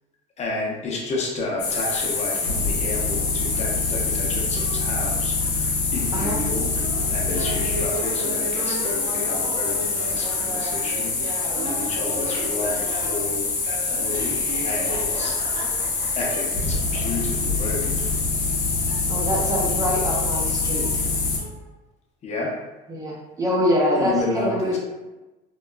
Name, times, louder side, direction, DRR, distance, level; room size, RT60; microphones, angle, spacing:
voice 1, 0.4-6.7 7.1-11.2 11.6-13.5 14.0-15.3 16.2-18.3 22.2-22.5 24.0-24.8, left 3 dB, 35° left, -2 dB, 0.7 m, -31 dB
sound 1, 1.6-21.4, left 4 dB, 80° left, 0.7 m, -25 dB
sound 2, 4.6-5.1 6.2-8.4 8.7-9.3 10.2-10.6 10.8-12.6 13.0-13.4 14.3-14.4 14.8-15.3 15.6-16.0 16.3-16.6 17.0-17.2 17.6-17.7 18.9-19.1 19.5-19.8 20.1-20.5 20.7-21.1 21.4-21.7, right 1 dB, 45° right, 1.1 m, -39 dB
Laughter, 7.3-13.2 13.6-16.2, right 1 dB, 80° right, 1.0 m, -35 dB
voice 2, 19.1-21.0 22.9-24.8, equal, 20° right, -3 dB, 0.5 m, -24 dB
2.9 x 2.2 x 2.2 m, 1.1 s
supercardioid pair, 105°, 19 cm